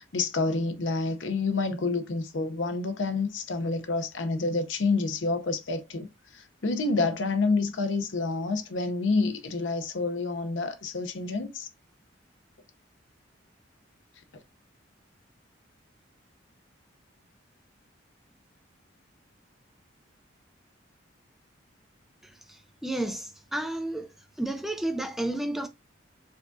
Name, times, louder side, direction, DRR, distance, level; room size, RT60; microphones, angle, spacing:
voice 1, 0.0-6.1 6.3-11.7, left 3 dB, 70° left, 0.6 m, -28 dB
voice 2, 22.5-24.1 24.4-25.7, right 1 dB, ahead, 0.4 m, -31 dB
4.6 x 2.3 x 2.6 m
head